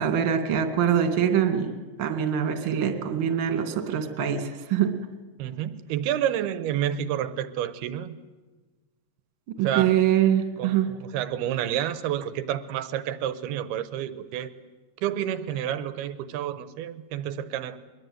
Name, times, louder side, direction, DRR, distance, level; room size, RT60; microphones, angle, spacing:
voice 1, 0.0-1.7 2.0-5.0 9.6-10.9, right 9 dB, 40° right, 6 dB, 2.2 m, -24 dB
voice 2, 5.4-8.1 9.6-10.0 10.6-14.5 15.0-17.8, right 11 dB, 75° right, 13 dB, 2.7 m, -29 dB
23.5 x 21.5 x 9.4 m, 1.3 s
omnidirectional pair, 5.2 m